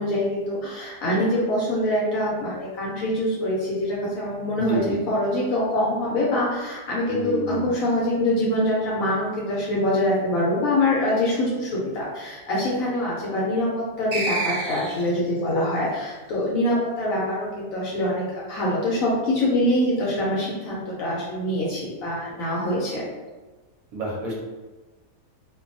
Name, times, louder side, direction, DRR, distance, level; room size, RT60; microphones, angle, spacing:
voice 1, 0.0-23.0, left 1 dB, 65° left, -5 dB, 0.9 m, -24 dB
voice 2, 7.1-7.7 23.9-24.4, equal, 65° right, -4 dB, 0.9 m, -29 dB
sound 1, 14.1-15.3, right 3 dB, 45° right, 0.6 m, -28 dB
2.6 x 2.2 x 2.5 m, 1.2 s
omnidirectional pair, 1.8 m